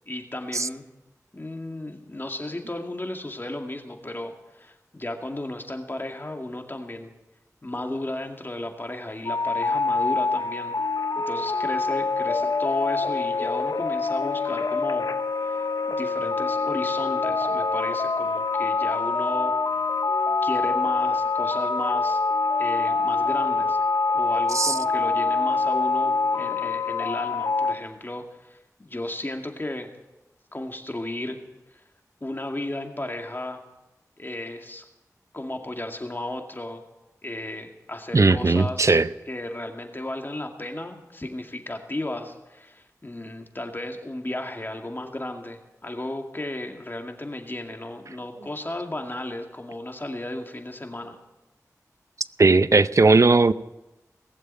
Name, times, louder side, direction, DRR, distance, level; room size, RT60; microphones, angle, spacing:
voice 1, 0.1-0.8 1.3-7.1 7.6-10.7 11.3-15.1 15.4-19.5 20.4-22.2 22.6-23.8 24.1-29.9 30.5-31.4 31.7-31.8 32.2-33.6 34.2-34.8 35.3-36.8 37.2-39.0 39.3-51.2, left 1 dB, 35° left, 3 dB, 2.2 m, -34 dB
sound 1, 9.3-27.7, left 4 dB, 85° left, 0.9 m, -25 dB
voice 2, 38.1-39.1 52.4-53.5, right 3 dB, 55° right, 14 dB, 0.6 m, -18 dB
19.5 x 7.4 x 9.0 m, 1.0 s
wide cardioid pair, 45°, 6 cm